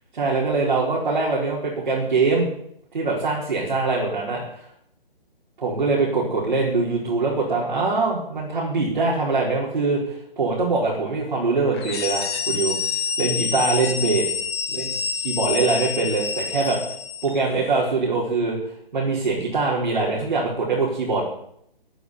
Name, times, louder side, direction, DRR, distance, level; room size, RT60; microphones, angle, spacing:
voice 1, 0.2-2.5 2.9-4.6 5.6-10.0 10.4-12.7 13.2-14.2 14.7-14.9 15.2-16.8 17.2-18.6 18.9-21.2, right 3 dB, 55° right, -5 dB, 4.7 m, -23 dB
sound 1, 11.7-17.4, left 6 dB, 25° left, 1.4 m, -27 dB
14.5 x 7.0 x 9.5 m, 0.71 s
figure-of-eight pair, 140°, 30 cm